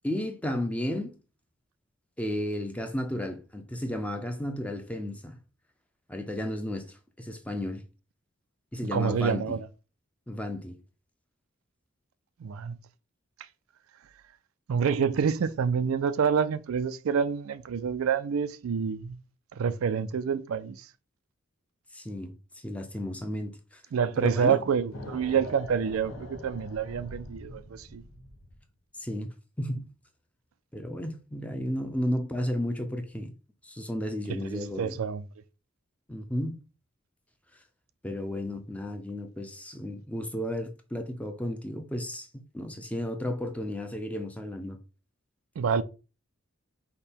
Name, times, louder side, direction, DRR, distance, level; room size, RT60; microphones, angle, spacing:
voice 1, 0.0-1.1 2.2-5.4 6.1-7.8 8.7-9.6 10.3-10.8 21.9-23.8 24.2-24.6 29.0-29.3 29.6-29.9 30.7-33.3 33.6-35.0 36.1-36.6 38.0-42.3 42.5-44.8, left 1 dB, 5° left, 0.6 m, -33 dB
voice 2, 8.9-9.7 12.4-12.8 14.7-19.2 19.5-20.9 23.9-28.0 34.4-35.2 45.6-45.8, right 6 dB, 80° right, 0.4 m, -27 dB
sound 1, 24.9-28.6, left 1 dB, 85° left, 1.3 m, -43 dB
5.2 x 2.2 x 4.3 m
head